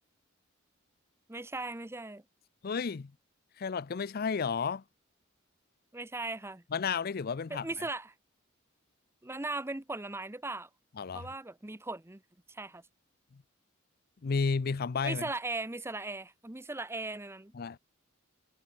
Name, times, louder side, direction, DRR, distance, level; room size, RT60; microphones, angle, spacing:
voice 1, 1.3-2.2 5.9-6.6 7.5-8.1 9.2-10.7 11.1-12.2 12.5-12.8 15.0-17.5, right 2 dB, 10° right, 0.8 m, -38 dB
voice 2, 2.6-3.1 3.6-4.8 6.7-7.7 11.0-11.3 14.2-15.2 17.5-17.8, left 5 dB, 45° left, 0.5 m, -32 dB
head